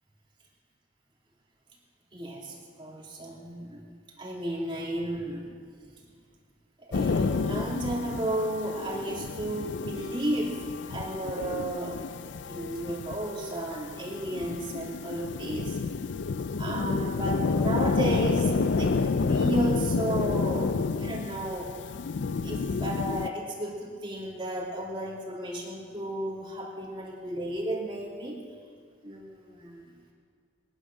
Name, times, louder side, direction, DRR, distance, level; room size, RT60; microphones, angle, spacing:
voice 1, 2.1-3.8 4.2-5.5 6.8-10.6 10.9-12.0 12.5-15.8 16.6-21.7 22.4-28.4 29.0-29.8, right 1 dB, 30° right, -4 dB, 3.1 m, -33 dB
sound 1, 6.9-23.3, left 4 dB, 85° left, 0.5 m, -30 dB
22.5 x 10.0 x 6.3 m, 2.1 s
head